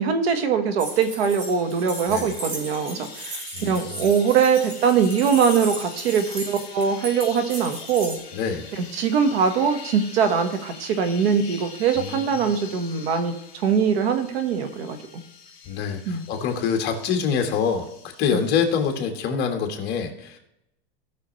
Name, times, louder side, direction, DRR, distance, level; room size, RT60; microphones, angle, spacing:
voice 1, 0.0-8.1 8.8-13.3 13.6-15.0 16.1-16.2 18.3-18.4, right 6 dB, 75° right, 8 dB, 1.7 m, -22 dB
sound 1, 0.8-19.0, left 6 dB, 15° left, 3.3 m, -44 dB
sound 2, 0.8-8.2, right 2 dB, 55° right, 3.8 m, -36 dB
voice 2, 3.5-4.0 8.3-8.7 12.0-12.5 15.7-17.9 18.2-20.4, left 6 dB, 30° left, 4 dB, 1.7 m, -26 dB
17.5 x 6.4 x 3.3 m, 0.87 s
supercardioid pair, 165°, 31 cm